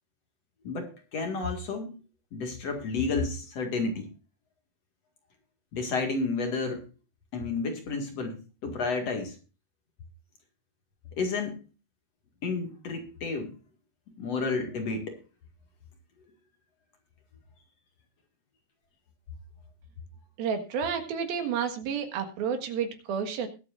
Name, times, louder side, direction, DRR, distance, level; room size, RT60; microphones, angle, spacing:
voice 1, 0.6-2.0 2.3-4.1 5.7-6.9 7.3-9.3 11.2-11.6 12.4-13.5 14.2-15.2, left 4 dB, 45° left, 4 dB, 2.6 m, -31 dB
voice 2, 20.4-23.5, right 7 dB, 65° right, 6 dB, 3.3 m, -30 dB
22.0 x 8.3 x 2.5 m, 0.33 s
omnidirectional pair, 4.8 m